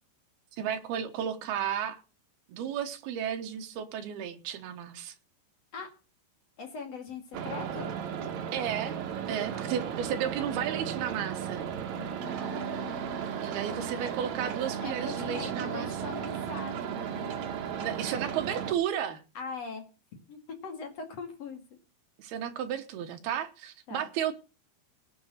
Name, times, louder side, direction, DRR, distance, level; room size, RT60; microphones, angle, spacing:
voice 1, 0.5-2.0 2.5-5.1 8.5-9.0 9.3-11.6 13.4-15.9 17.7-19.2 22.2-24.4, right 9 dB, 70° right, 2.6 m, -33 dB
voice 2, 6.6-7.9 11.9-14.0 14.8-17.4 19.3-19.8 20.3-21.6 23.9-24.0, left 5 dB, 45° left, 2.6 m, -41 dB
sound 1, 7.3-18.7, right 8 dB, 85° right, 1.5 m, -35 dB
19.0 x 7.2 x 6.5 m
omnidirectional pair, 5.6 m